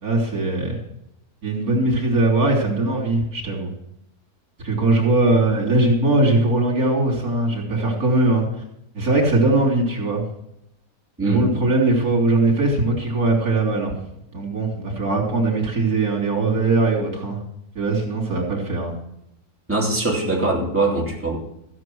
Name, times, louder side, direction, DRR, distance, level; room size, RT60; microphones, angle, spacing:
voice 1, 0.0-0.8 1.4-3.7 4.6-8.4 8.9-10.2 11.2-13.9 14.3-17.4 17.8-18.9, right 2 dB, 75° right, -1 dB, 3.8 m, -20 dB
voice 2, 11.2-11.6 19.7-21.4, right 2 dB, 10° right, -2 dB, 3.0 m, -22 dB
15.0 x 9.6 x 6.2 m, 0.80 s
omnidirectional pair, 1.6 m